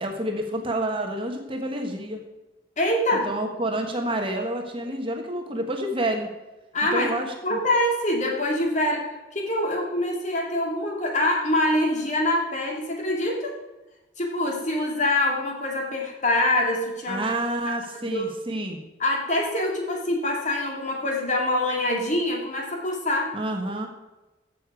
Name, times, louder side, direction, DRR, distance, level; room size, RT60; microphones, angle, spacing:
voice 1, 0.0-2.2 3.2-6.3 6.9-7.6 17.1-18.8 23.3-23.9, right 1 dB, 30° right, 3 dB, 1.3 m, -28 dB
voice 2, 2.8-3.3 6.7-7.1 7.4-13.6 14.2-17.2 18.0-18.3 19.0-23.3, left 1 dB, 40° left, 0 dB, 2.4 m, -25 dB
15.0 x 6.7 x 4.8 m, 1.1 s
head